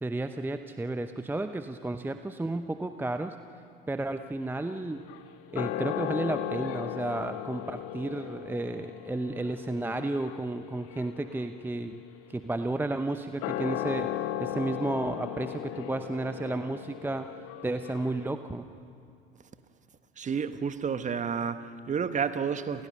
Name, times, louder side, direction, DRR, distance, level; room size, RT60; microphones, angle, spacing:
voice 1, 0.0-3.4 3.9-5.0 5.5-12.0 12.3-17.3 17.6-18.7, right 2 dB, 5° right, 0.9 m, -32 dB
sound 1, 4.6-18.3, left 12 dB, 50° left, 1.5 m, -37 dB
voice 2, 20.2-22.9, right 6 dB, 25° right, 1.4 m, -30 dB
29.0 x 29.0 x 6.7 m
hypercardioid pair, 80°, 29 cm